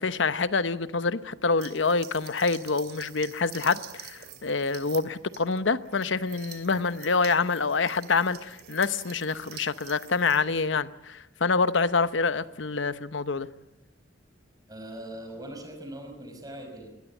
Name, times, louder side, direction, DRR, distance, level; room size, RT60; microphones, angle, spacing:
voice 1, 0.0-13.5, left 4 dB, 85° left, 0.9 m, -26 dB
sound 1, 1.6-10.4, right 9 dB, 55° right, 2.7 m, -47 dB
voice 2, 14.7-16.9, right 1 dB, 20° right, 5.5 m, -41 dB
22.5 x 20.5 x 7.2 m
head